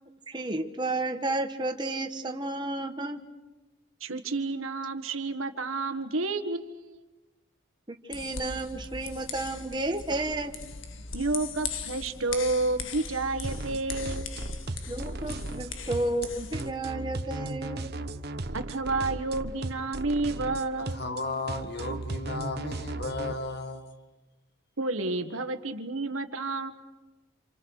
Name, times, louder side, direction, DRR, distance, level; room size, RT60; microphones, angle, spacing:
voice 1, 0.3-3.2 8.0-10.6 14.9-17.9, right 2 dB, 20° right, 1.5 m, -32 dB
voice 2, 4.0-7.1 11.1-14.3 18.5-21.0 24.8-26.7, right 3 dB, 80° right, 1.7 m, -30 dB
sound 1, 8.1-16.7, left 5 dB, 70° left, 1.7 m, -39 dB
sound 2, 13.4-23.3, right 2 dB, 50° right, 1.2 m, -36 dB
voice 3, 20.8-23.8, left 2 dB, 50° left, 2.1 m, -34 dB
28.0 x 27.5 x 6.6 m
head